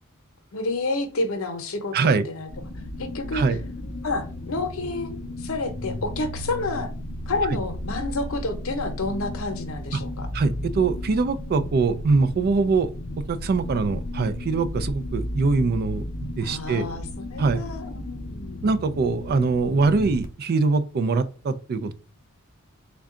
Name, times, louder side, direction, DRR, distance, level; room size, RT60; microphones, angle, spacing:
voice 1, 0.5-2.5 3.0-3.4 4.0-6.9 7.3-10.3 16.4-18.6, left 2 dB, 70° left, 0.8 m, -29 dB
voice 2, 1.9-2.3 3.3-3.6 10.3-12.9 13.3-16.9 17.4-17.6 18.6-21.9, right 4 dB, 45° right, 0.4 m, -23 dB
sound 1, 2.5-20.2, left 1 dB, 40° left, 0.5 m, -34 dB
3.6 x 2.2 x 3.7 m
head